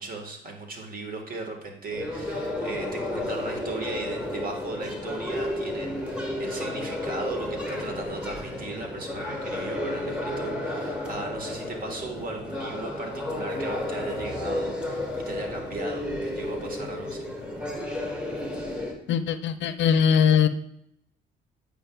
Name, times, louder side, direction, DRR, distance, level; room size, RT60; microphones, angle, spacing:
voice 1, 0.0-17.3, right 2 dB, 45° right, 3 dB, 1.5 m, -37 dB
sound 1, 1.9-18.9, left 1 dB, 5° right, 1.4 m, -32 dB
voice 2, 19.1-20.5, left 7 dB, 65° left, 11 dB, 0.5 m, -21 dB
8.7 x 5.2 x 2.3 m, 0.74 s
cardioid pair, 90°, 20 cm